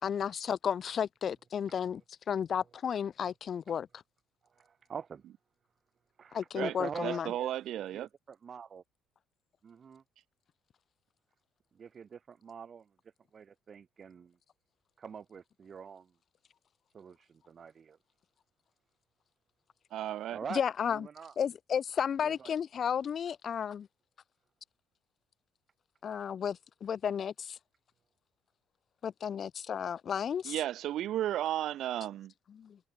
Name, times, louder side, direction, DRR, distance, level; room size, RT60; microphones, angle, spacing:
voice 1, 0.0-2.0 2.3-4.0 6.3-7.3 20.5-21.1 21.4-23.9 26.0-27.6 29.0-30.5 32.5-32.8, left 8 dB, 50° left, 6.3 m, -33 dB
voice 2, 4.6-5.2 6.2-7.5 7.9-8.8 9.6-10.0 11.7-12.9 13.3-14.4 15.0-16.1 16.9-18.0 20.3-20.6 20.9-21.3 22.2-22.5, right 6 dB, 45° right, 6.6 m, -44 dB
voice 3, 7.0-8.1 19.9-20.4 30.4-32.3, right 12 dB, 65° right, 5.4 m, -34 dB
hypercardioid pair, 60°, 0 cm